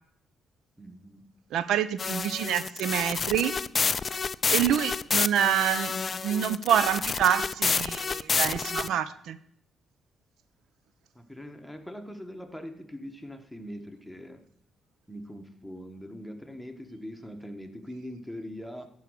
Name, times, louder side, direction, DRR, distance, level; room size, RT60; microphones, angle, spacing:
voice 1, 0.8-1.3 8.8-8.9 11.1-14.4 15.1-18.9, equal, ahead, 7 dB, 1.2 m, -42 dB
voice 2, 1.5-3.5 4.5-5.9 6.2-9.4, right 10 dB, 80° right, 15 dB, 0.4 m, -27 dB
sound 1, 2.0-8.9, left 5 dB, 40° left, 0.3 m, -29 dB
11.5 x 4.8 x 6.4 m, 0.71 s
cardioid pair, 90°, 0 cm